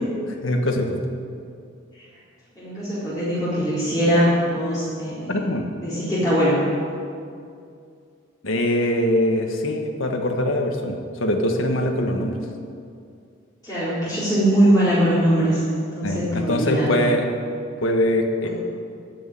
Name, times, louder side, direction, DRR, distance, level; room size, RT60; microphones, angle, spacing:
voice 1, 0.4-1.0 5.3-5.7 8.4-12.4 16.0-17.3 17.8-18.5, left 1 dB, 75° left, 3 dB, 1.6 m, -22 dB
voice 2, 2.6-5.3 5.8-6.6 13.6-16.9 18.4-18.5, equal, 20° left, -11 dB, 4.0 m, -21 dB
15.0 x 6.5 x 9.9 m, 2.4 s
head